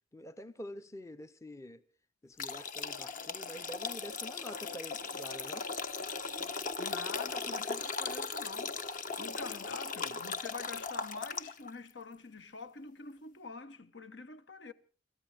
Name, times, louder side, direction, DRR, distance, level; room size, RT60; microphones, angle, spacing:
voice 1, 0.1-1.8 2.2-5.7, equal, 15° left, 0.7 m, -46 dB
sound 1, 2.4-11.7, left 4 dB, 45° left, 1.2 m, -38 dB
voice 2, 6.8-8.9 9.2-14.7, left 4 dB, 70° left, 1.2 m, -46 dB
30.0 x 14.0 x 3.4 m
head